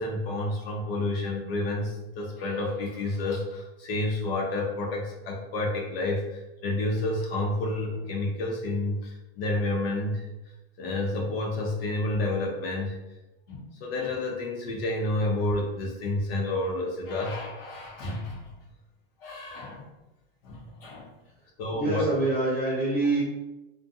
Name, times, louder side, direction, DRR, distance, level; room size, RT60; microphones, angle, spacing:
voice 1, 0.0-10.2 10.8-13.0 13.5-18.4 19.2-19.9 20.4-21.1 21.6-22.0, left 2 dB, 70° left, -1 dB, 0.7 m, -30 dB
voice 2, 21.7-23.2, right 2 dB, ahead, -13 dB, 0.5 m, -25 dB
2.6 x 2.2 x 2.5 m, 0.99 s
supercardioid pair, 160°, 30 cm